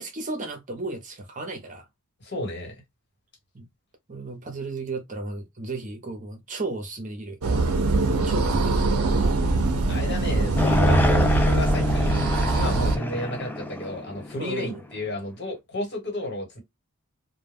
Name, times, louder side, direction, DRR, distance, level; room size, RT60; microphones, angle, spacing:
voice 1, 0.0-1.8 3.5-3.7 4.1-7.4 8.2-8.8 10.3-11.0 14.4-14.8, right 2 dB, 35° right, 0.7 m, -34 dB
voice 2, 2.2-2.7 9.9-16.6, left 1 dB, 50° left, 1.4 m, -32 dB
sound 1, 7.4-13.0, right 3 dB, 85° right, 0.6 m, -23 dB
sound 2, 10.6-14.9, left 2 dB, 10° left, 0.3 m, -26 dB
2.2 x 2.1 x 3.3 m
head